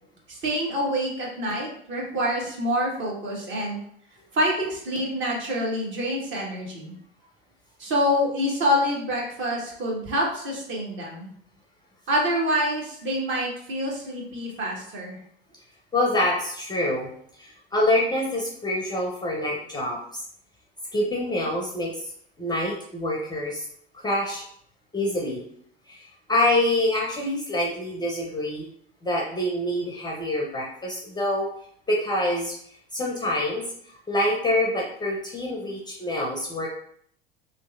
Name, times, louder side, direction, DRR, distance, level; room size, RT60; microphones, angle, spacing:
voice 1, 0.3-3.8 4.3-6.9 7.8-11.3 12.1-15.2, equal, 40° right, -2 dB, 1.1 m, -26 dB
voice 2, 15.9-17.1 17.4-20.0 20.9-21.9 22.4-23.7 23.9-24.4 24.9-25.4 25.9-28.6 29.0-31.5 31.9-32.6 32.9-33.6 34.1-36.7, left 1 dB, 15° left, -1 dB, 0.5 m, -26 dB
2.8 x 2.4 x 2.4 m, 0.64 s
hypercardioid pair, 75°, 30 cm